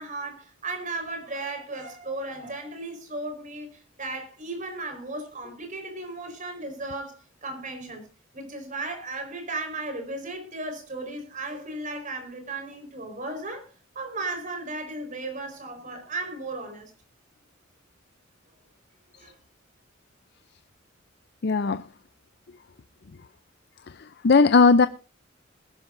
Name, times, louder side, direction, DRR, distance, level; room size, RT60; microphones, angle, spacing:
voice 1, 0.0-8.0 8.3-13.7 13.9-16.9 19.1-19.4, right 2 dB, 40° right, 4.7 m, -35 dB
voice 2, 21.4-21.9 23.9-24.9, left 4 dB, 55° left, 0.5 m, -18 dB
21.0 x 11.5 x 2.6 m
head